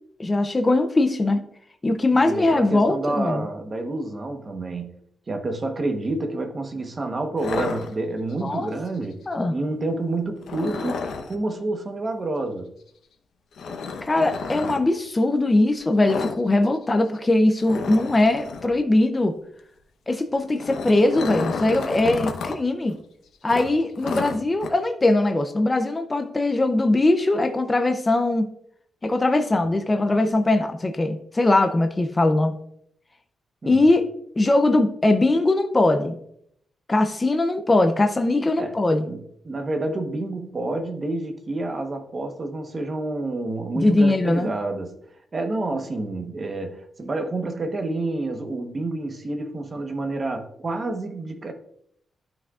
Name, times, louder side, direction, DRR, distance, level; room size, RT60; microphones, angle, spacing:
voice 1, 0.2-1.4 1.8-3.5 8.4-8.7 9.3-9.5 14.0-19.3 20.1-22.9 23.4-28.5 29.0-32.6 33.7-34.0 34.4-36.1 36.9-39.0 43.7-44.5, left 2 dB, 20° left, 0.5 m, -21 dB
voice 2, 2.1-4.9 5.3-9.2 9.5-12.7 33.6-33.8 38.6-38.7 39.1-45.0 45.3-51.5, right 2 dB, 30° right, 1.0 m, -29 dB
sound 1, 7.4-8.4 10.4-11.4 13.6-14.8 16.0-16.4 16.7-16.8 17.2-17.3 17.6-18.7 20.3-22.6 22.9-23.0 23.5-24.7, left 4 dB, 90° left, 0.8 m, -31 dB
12.5 x 6.0 x 2.4 m
wide cardioid pair, 170°, 0 cm